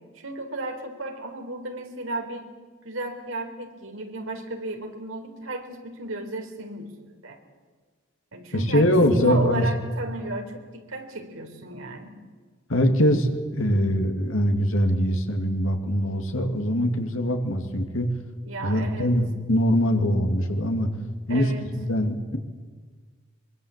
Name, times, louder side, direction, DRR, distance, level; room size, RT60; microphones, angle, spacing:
voice 1, 0.1-2.5 2.8-6.9 7.2-7.4 8.3-12.2 18.5-19.1 21.3-21.7, right 2 dB, 75° right, 4 dB, 3.9 m, -34 dB
voice 2, 8.5-9.7 12.7-18.1 18.6-20.9 21.3-21.5 21.7-22.4, equal, 75° left, 5 dB, 2.6 m, -22 dB
23.5 x 22.5 x 8.3 m, 1.5 s
head